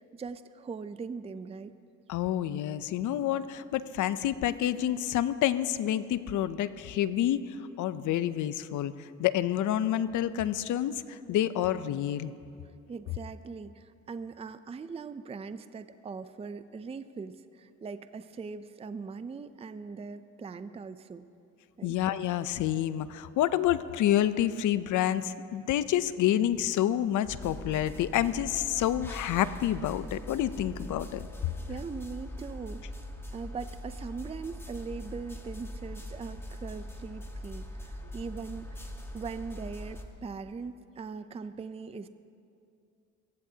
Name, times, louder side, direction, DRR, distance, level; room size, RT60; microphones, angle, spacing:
voice 1, 0.0-1.7 12.9-21.3 21.8-22.0 31.7-33.1 33.3-42.1, right 5 dB, 20° right, 12 dB, 0.5 m, -41 dB
voice 2, 2.1-12.3 21.8-31.2, left 11 dB, 75° left, 14 dB, 0.6 m, -28 dB
sound 1, 27.2-40.0, equal, 10° left, 1.4 m, -42 dB
24.0 x 15.5 x 2.8 m, 2.5 s
cardioid pair, 90°, 30 cm